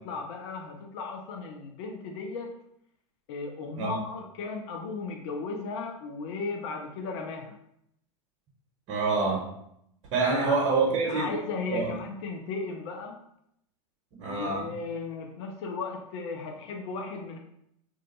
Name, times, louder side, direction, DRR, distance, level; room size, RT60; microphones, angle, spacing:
voice 1, 0.0-2.5 3.3-7.6 10.2-10.6 11.1-13.2 14.3-17.4, left 4 dB, 60° left, 2 dB, 0.5 m, -36 dB
voice 2, 8.9-9.5 10.1-11.3 11.7-11.9 14.2-14.7, right 4 dB, 50° right, -2 dB, 0.8 m, -26 dB
2.5 x 2.2 x 4.0 m, 0.74 s
hypercardioid pair, 110°, 16 cm